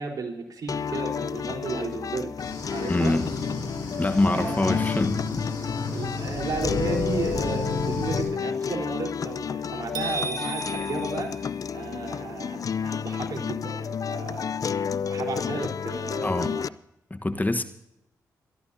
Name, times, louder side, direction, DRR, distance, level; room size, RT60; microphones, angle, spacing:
voice 1, 0.0-2.3 2.7-3.2 3.8-4.8 5.9-16.7, right 4 dB, 60° right, 4.0 m, -34 dB
sound 1, 0.7-16.7, left 7 dB, 55° left, 0.5 m, -31 dB
sound 2, 2.4-8.2, left 3 dB, 80° left, 5.6 m, -33 dB
voice 2, 2.9-3.3 4.0-5.5 16.2-16.5 17.1-17.6, left 2 dB, 25° left, 1.3 m, -25 dB
sound 3, 9.9-12.1, right 4 dB, 75° right, 2.3 m, -35 dB
24.0 x 13.5 x 2.8 m
supercardioid pair, 45°, 7 cm